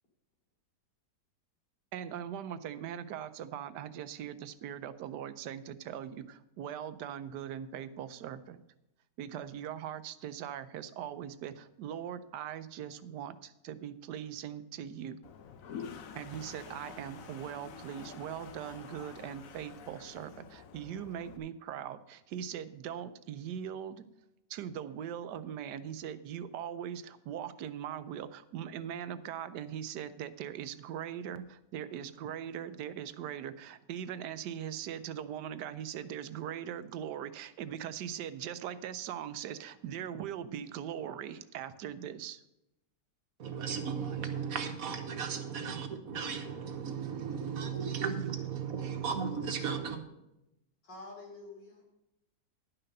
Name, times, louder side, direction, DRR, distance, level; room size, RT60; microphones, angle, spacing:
voice 1, 1.9-8.6 9.2-15.2 16.1-24.0 24.5-42.4, right 9 dB, 80° right, 1.2 m, -40 dB
Toilet flush, 15.2-21.4, left 7 dB, 60° left, 1.1 m, -48 dB
voice 2, 43.4-50.0, right 6 dB, 60° right, 1.4 m, -35 dB
voice 3, 47.3-47.9 48.7-49.0 50.8-51.8, left 2 dB, 90° left, 3.6 m, -49 dB
11.0 x 5.9 x 6.6 m
omnidirectional pair, 1.8 m